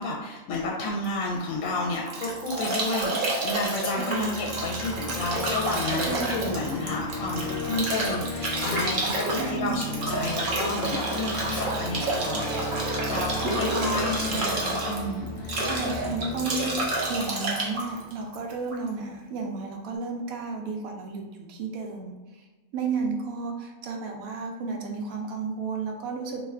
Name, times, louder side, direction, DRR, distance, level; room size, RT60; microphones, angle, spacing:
voice 1, 0.0-3.1 3.4-12.6 13.1-15.7, left 2 dB, 75° left, -2 dB, 0.9 m, -31 dB
Bathtub (filling or washing) / Drip / Trickle dribble, 1.6-18.9, right 2 dB, 55° right, 0.6 m, -30 dB
voice 2, 3.9-4.3 6.0-6.6 9.3-9.8 12.0-12.6 13.4-14.4 15.6-22.1 22.7-26.4, right 4 dB, 80° right, 1 dB, 1.0 m, -33 dB
sound 1, 4.0-18.2, left 2 dB, 5° left, 0.6 m, -35 dB
2.7 x 2.4 x 3.2 m, 1.2 s
omnidirectional pair, 1.5 m